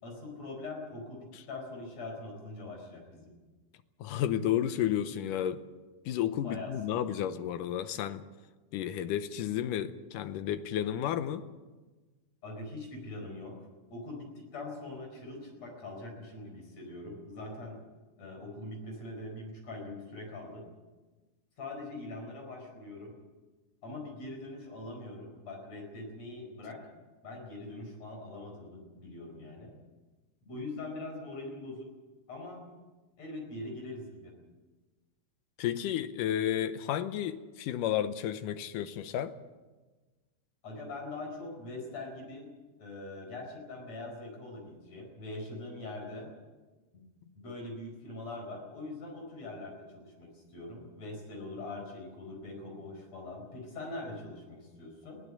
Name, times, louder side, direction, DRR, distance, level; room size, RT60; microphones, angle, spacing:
voice 1, 0.0-3.3 6.4-7.3 12.4-13.5 13.9-17.8 18.2-20.6 21.6-23.1 23.8-26.8 27.2-29.7 30.4-31.9 32.3-32.6 33.2-34.3 40.6-42.5 42.8-46.3 46.9-47.1 47.3-55.2, left 2 dB, 40° left, 2 dB, 5.8 m, -42 dB
voice 2, 4.0-5.7 6.1-8.2 8.7-11.4 35.6-39.3, left 10 dB, 75° left, 11 dB, 2.0 m, -32 dB
21.5 x 16.0 x 8.4 m, 1.2 s
omnidirectional pair, 4.6 m